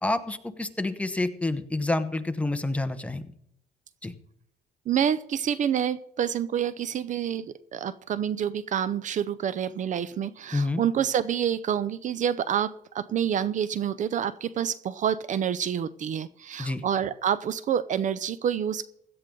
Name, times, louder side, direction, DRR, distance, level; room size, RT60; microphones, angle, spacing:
voice 1, 0.0-3.2 4.0-4.1 10.5-10.8 16.6-16.8, left 2 dB, 5° left, 9 dB, 1.0 m, -28 dB
voice 2, 4.9-18.8, right 9 dB, 45° right, 16 dB, 0.6 m, -28 dB
16.5 x 12.0 x 3.8 m, 0.75 s
cardioid pair, 110°, 17 cm